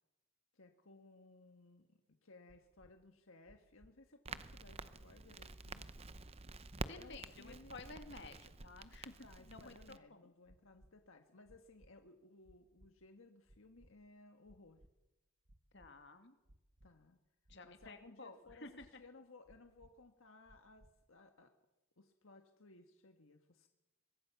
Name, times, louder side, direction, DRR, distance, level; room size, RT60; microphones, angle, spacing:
voice 1, 0.5-5.9 6.9-7.8 9.2-14.8 16.8-17.2 17.6-18.7 19.0-21.5 22.0-23.7, left 2 dB, 75° left, 5 dB, 1.5 m, -61 dB
sound 1, 2.5-2.9 3.4-3.9 4.4-4.9 5.4-5.9 6.4-6.9 7.4-7.9 8.4-8.9 9.4-9.9 10.4-10.9 11.4-11.9 12.4-12.9 13.4-13.9 14.4-14.9 15.4-15.9 16.4-16.9 17.4-17.9 18.4-18.9 19.4-19.9 20.4-20.9, right 1 dB, 50° right, 1.4 m, -64 dB
Crackle, 4.2-10.0, right 3 dB, 30° right, 0.8 m, -49 dB
voice 2, 6.7-10.3 15.7-16.3 17.5-18.9, left 3 dB, 55° left, 7 dB, 2.2 m, -53 dB
23.5 x 22.0 x 5.9 m, 1.0 s
head